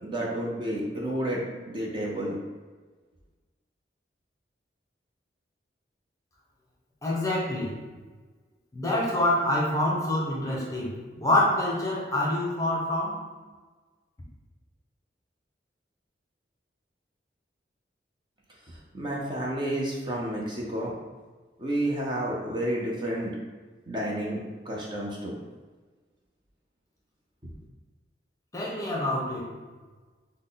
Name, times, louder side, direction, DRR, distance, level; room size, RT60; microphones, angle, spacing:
voice 1, 0.0-1.4 1.7-2.4 18.9-20.9 21.6-23.3 23.9-24.4 24.6-25.3, right 1 dB, 25° right, -3 dB, 0.7 m, -30 dB
voice 2, 7.0-7.8 8.7-13.2 28.5-29.6, left 1 dB, 20° left, -4 dB, 0.8 m, -26 dB
6.0 x 2.2 x 3.9 m, 1.4 s
head